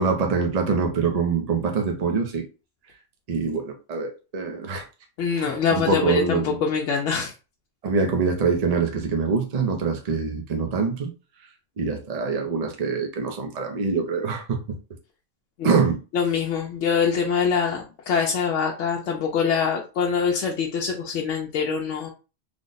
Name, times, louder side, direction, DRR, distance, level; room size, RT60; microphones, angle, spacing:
voice 1, 0.0-2.5 3.3-4.9 5.4-6.6 7.8-11.1 11.4-11.5 11.8-14.8 15.6-16.0, right 5 dB, 50° right, 0.5 m, -24 dB
voice 2, 5.2-7.3 15.6-15.7 16.1-22.1, left 6 dB, 75° left, 0.9 m, -24 dB
3.3 x 2.0 x 3.9 m
omnidirectional pair, 1.3 m